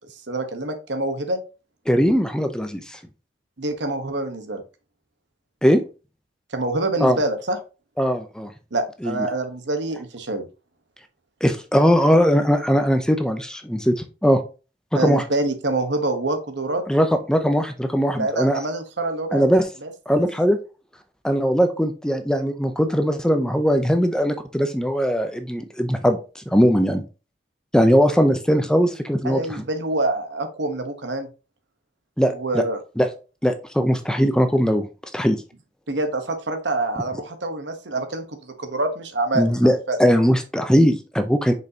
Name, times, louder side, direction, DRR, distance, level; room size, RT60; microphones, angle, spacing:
voice 1, 0.1-1.4 3.6-4.6 6.5-7.6 8.7-10.5 14.9-16.8 18.1-19.9 29.2-31.3 32.3-32.8 35.9-40.0, right 2 dB, 75° right, 7 dB, 1.2 m, -26 dB
voice 2, 1.9-3.0 5.6-5.8 7.0-7.2 8.0-8.5 9.0-9.2 11.4-14.4 14.9-15.2 16.9-18.6 19.3-19.6 20.1-20.6 21.2-27.0 27.7-29.6 32.2-32.6 33.0-33.1 33.4-34.9 35.1-35.4 39.3-41.5, equal, 5° left, 7 dB, 0.6 m, -20 dB
6.4 x 5.3 x 2.9 m, 0.32 s
head